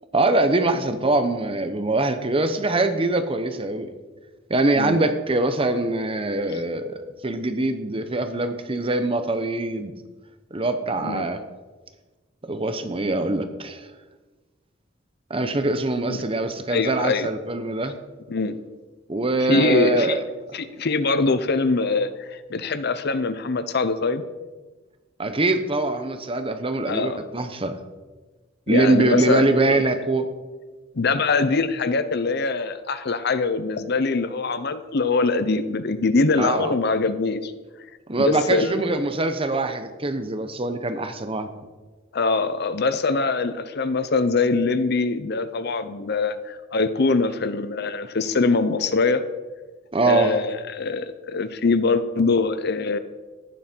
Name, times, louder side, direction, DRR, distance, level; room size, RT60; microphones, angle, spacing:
voice 1, 0.1-3.9 4.5-10.0 10.5-11.4 12.5-13.9 15.3-18.0 19.1-20.2 25.2-27.8 28.7-30.3 36.4-36.7 38.1-41.5 49.9-50.4, right 2 dB, 30° right, 8 dB, 0.9 m, -23 dB
voice 2, 16.7-17.3 18.3-18.6 19.5-20.2 20.5-24.2 26.9-27.2 28.7-29.8 31.0-37.5 38.2-38.7 42.1-49.2 50.0-53.0, left 3 dB, 55° left, 12 dB, 0.7 m, -23 dB
15.0 x 11.0 x 4.5 m, 1.3 s
head